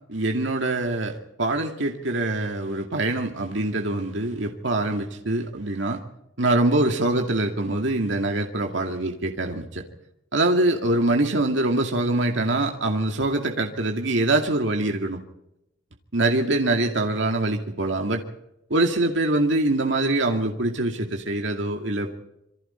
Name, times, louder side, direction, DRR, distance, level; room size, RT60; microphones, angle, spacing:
voice 1, 0.1-6.0 6.4-9.8 10.3-15.2 16.1-18.2 18.7-22.2, right 2 dB, 70° right, 3 dB, 2.2 m, -24 dB
27.0 x 23.5 x 4.4 m, 0.82 s
head